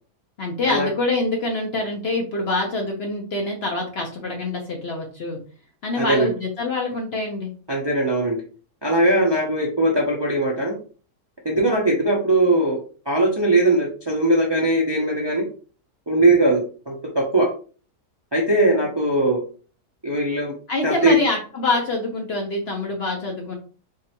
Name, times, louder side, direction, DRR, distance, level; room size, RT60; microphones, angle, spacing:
voice 1, 0.4-5.4 5.8-7.5 20.7-23.6, left 2 dB, 50° left, 0 dB, 0.9 m, -25 dB
voice 2, 6.0-6.3 7.7-8.4 8.8-10.8 11.4-12.8 13.1-15.5 16.1-17.5 18.3-19.4 20.0-20.6 20.8-21.2, right 1 dB, 25° right, -2 dB, 0.5 m, -20 dB
3.7 x 3.2 x 2.9 m, 0.39 s
omnidirectional pair, 1.7 m